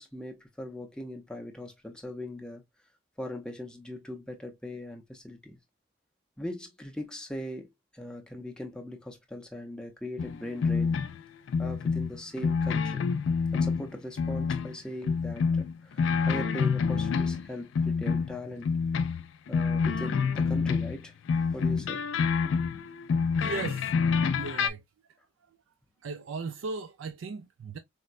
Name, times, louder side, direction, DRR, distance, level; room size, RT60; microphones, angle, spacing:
voice 1, 0.0-2.6 3.2-5.6 6.4-7.7 7.9-10.9 11.6-13.1 13.5-18.7 19.5-21.1 21.5-22.1, left 1 dB, 5° left, 0.5 m, -40 dB
sound 1, 10.2-11.2 11.5-13.9 14.2-14.8 15.0-17.5 17.8-21.0 21.3-24.7, left 5 dB, 70° left, 0.3 m, -27 dB
voice 2, 23.3-23.9 24.4-25.1 26.0-27.8, right 4 dB, 80° right, 0.4 m, -37 dB
4.3 x 2.1 x 2.3 m
head